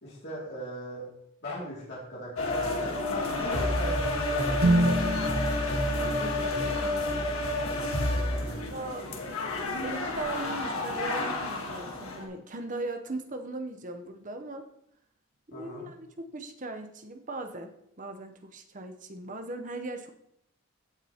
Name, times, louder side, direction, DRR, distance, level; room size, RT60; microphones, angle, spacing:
voice 1, 0.0-1.1 1.4-5.0 8.2-8.6 15.5-15.8, equal, 50° left, -6 dB, 2.5 m, -39 dB
sound 1, 2.4-12.2, left 1 dB, 80° left, 1.4 m, -30 dB
sound 2, 4.6-8.6, right 1 dB, 75° right, 1.4 m, -30 dB
voice 2, 6.0-7.3 8.7-9.1 9.8-14.7 15.5-20.1, right 2 dB, 35° right, 6 dB, 0.8 m, -39 dB
15.0 x 5.9 x 2.9 m, 0.76 s
head